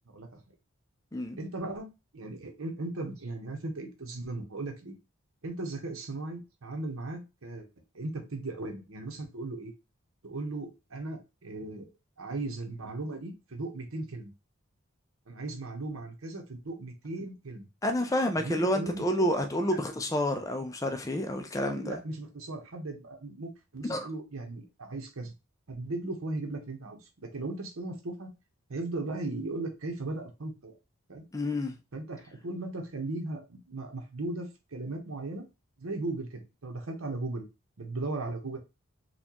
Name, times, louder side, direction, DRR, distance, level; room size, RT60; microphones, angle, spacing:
voice 1, 0.1-0.4 1.4-4.9 5.4-7.7 7.9-9.7 10.2-11.9 12.2-14.3 15.3-17.7 18.4-19.3 19.7-19.8 21.6-25.3 25.7-28.3 28.7-30.7 31.1-31.2 31.9-35.5 35.8-37.5 37.8-38.6, right 2 dB, 80° right, 1.0 m, -37 dB
voice 2, 17.8-22.0 23.8-24.1 31.3-31.8, left 1 dB, 15° left, 0.4 m, -29 dB
4.2 x 2.3 x 2.9 m
head